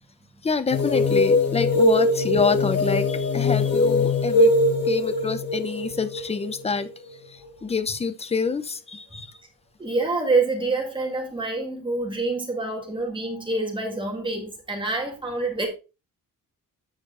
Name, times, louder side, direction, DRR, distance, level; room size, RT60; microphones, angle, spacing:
voice 1, 0.4-4.6 4.8-6.9 7.3-9.3, left 5 dB, 20° left, 0.6 m, -27 dB
sound 1, 0.7-7.1, left 2 dB, 45° left, 1.4 m, -21 dB
voice 2, 9.8-15.7, right 3 dB, 15° right, 2.0 m, -26 dB
8.8 x 5.1 x 3.8 m
wide cardioid pair, 180°, 33 cm